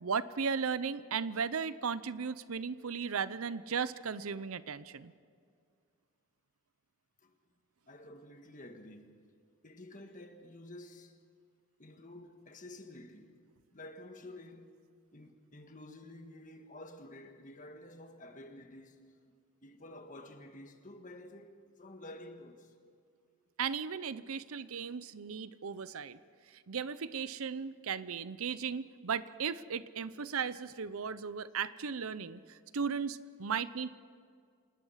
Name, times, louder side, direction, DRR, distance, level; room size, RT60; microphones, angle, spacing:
voice 1, 0.0-5.1 23.6-26.2 26.7-32.4 32.7-34.0, right 6 dB, 85° right, 0.7 m, -36 dB
voice 2, 7.9-9.2 9.6-11.2 11.8-13.4 13.7-14.7 15.1-19.1 19.6-22.7, left 1 dB, 40° left, 1.6 m, -50 dB
27.0 x 19.0 x 5.7 m
head